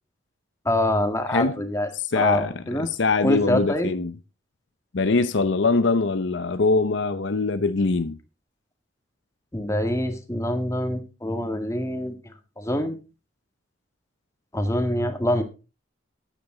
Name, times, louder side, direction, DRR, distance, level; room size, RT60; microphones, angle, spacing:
voice 1, 0.7-2.9 3.2-3.9 9.5-12.1 12.6-13.0 14.5-15.4, left 1 dB, 15° left, 1.9 m, -25 dB
voice 2, 2.1-4.1 4.9-8.2, left 3 dB, 60° left, 0.7 m, -23 dB
14.0 x 10.0 x 3.9 m
head